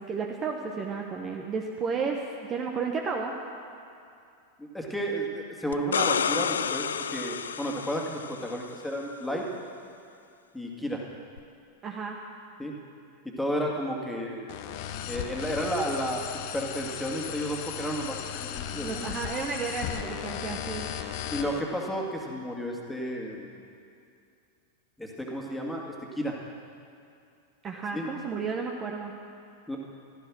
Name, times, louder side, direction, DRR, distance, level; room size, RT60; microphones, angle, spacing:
voice 1, 0.0-3.3 11.8-12.2 18.7-20.8 27.6-29.1, right 5 dB, 25° right, 1 dB, 1.2 m, -32 dB
voice 2, 4.6-9.5 10.5-11.0 12.6-12.7 13.2-14.6 15.1-16.2 16.5-19.1 21.3-23.6 25.0-26.4 27.9-28.1 29.7-29.8, equal, 5° left, -1 dB, 2.3 m, -32 dB
sound 1, 5.7-8.5 11.4-11.5, left 7 dB, 65° left, 0.4 m, -29 dB
sound 2, 14.5-21.6, left 9 dB, 50° left, 0.9 m, -36 dB
15.5 x 13.0 x 6.3 m, 2.5 s
figure-of-eight pair, 90°, 0 cm